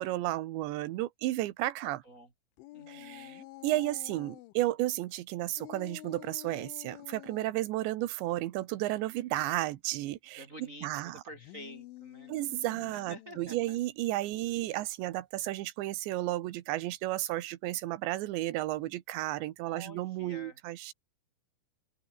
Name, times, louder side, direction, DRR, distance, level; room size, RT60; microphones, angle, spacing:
voice 1, 0.0-2.0 2.9-11.2 12.3-20.9, right 16 dB, 75° right, 3.3 m, -33 dB
voice 2, 1.8-2.3 2.7-3.5 10.4-12.3 12.9-13.8 19.6-20.6, equal, 40° right, 1.1 m, -49 dB
sound 1, 2.6-4.5 5.6-7.5 11.3-13.6, left 18 dB, 90° left, 3.4 m, -49 dB
open air
omnidirectional pair, 5.4 m